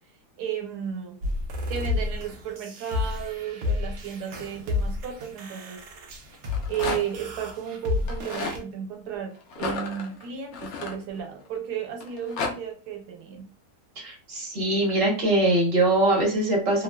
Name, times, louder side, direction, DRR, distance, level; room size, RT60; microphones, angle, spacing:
voice 1, 0.4-1.2 1.7-5.8 6.7-13.5, right 8 dB, 85° right, 2 dB, 1.3 m, -34 dB
sound 1, 1.2-8.6, left 3 dB, 70° right, 0.8 m, -31 dB
Rattle, 6.3-7.3 8.0-8.6 9.5-11.5 12.0-12.5, left 3 dB, 65° left, 0.7 m, -32 dB
voice 2, 14.0-16.8, right 2 dB, 40° right, -3 dB, 1.1 m, -22 dB
2.8 x 2.3 x 2.2 m, 0.36 s
omnidirectional pair, 1.7 m